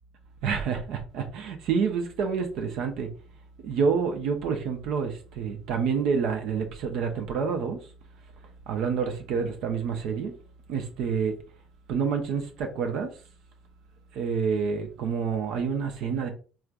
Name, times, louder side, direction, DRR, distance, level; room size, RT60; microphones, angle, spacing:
voice 1, 0.4-3.1 3.6-7.8 8.7-10.3 10.7-11.4 11.9-13.1 14.1-16.3, right 6 dB, 65° right, 0.6 m, -28 dB
4.3 x 2.4 x 2.4 m
hypercardioid pair, 60°, 0 cm